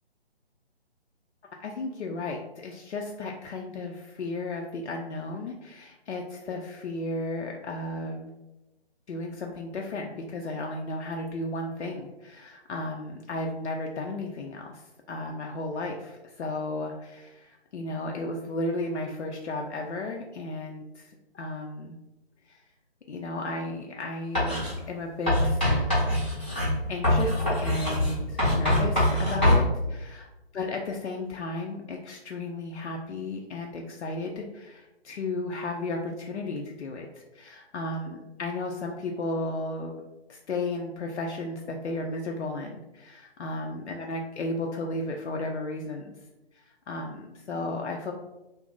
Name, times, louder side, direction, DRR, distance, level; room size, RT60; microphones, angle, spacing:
voice 1, 1.6-8.3 9.1-22.0 22.5-22.6 23.1-25.9 26.9-29.6 29.9-30.3 30.5-39.9 40.3-46.2 46.5-48.1, left 2 dB, 85° left, 1 dB, 0.5 m, -34 dB
Writing, 24.3-24.7 25.3-29.6, left 1 dB, 10° left, 0.5 m, -23 dB
2.5 x 2.0 x 3.7 m, 0.99 s
figure-of-eight pair, 150°, 33 cm